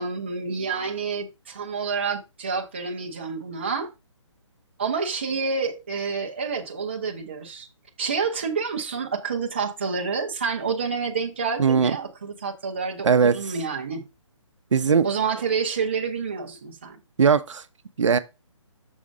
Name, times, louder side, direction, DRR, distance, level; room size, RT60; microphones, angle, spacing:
voice 1, 0.0-3.9 4.8-7.7 8.0-14.0 15.0-17.0, right 5 dB, 20° right, 0.5 m, -28 dB
voice 2, 11.6-11.9 13.0-13.5 14.7-15.1 17.2-17.6 18.0-18.2, right 6 dB, 70° right, 0.6 m, -19 dB
6.3 x 3.6 x 5.0 m
hypercardioid pair, 175°, 16 cm